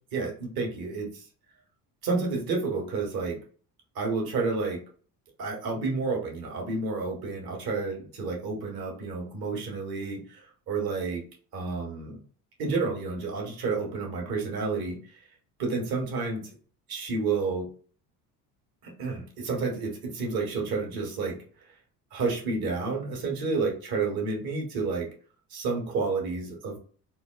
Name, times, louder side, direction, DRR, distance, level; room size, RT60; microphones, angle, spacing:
voice 1, 0.1-1.2 2.0-3.4 3.9-4.8 5.4-11.2 11.5-12.2 12.6-15.2 15.6-16.5 16.9-17.7 18.8-21.4 22.1-25.1 25.5-26.8, right 4 dB, 55° right, 1 dB, 1.3 m, -30 dB
3.9 x 2.3 x 2.2 m, 0.42 s
hypercardioid pair, 60°, 46 cm